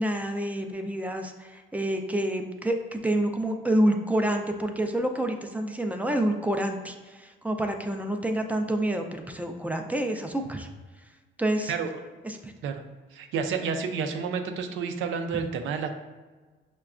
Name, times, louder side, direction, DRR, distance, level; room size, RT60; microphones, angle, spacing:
voice 1, 0.0-10.7 11.4-11.7 12.2-12.5, right 1 dB, 5° right, 4 dB, 0.3 m, -28 dB
voice 2, 13.1-15.9, right 6 dB, 80° right, 6 dB, 0.4 m, -30 dB
5.8 x 2.2 x 2.4 m, 1.3 s
cardioid pair, 90°, 20 cm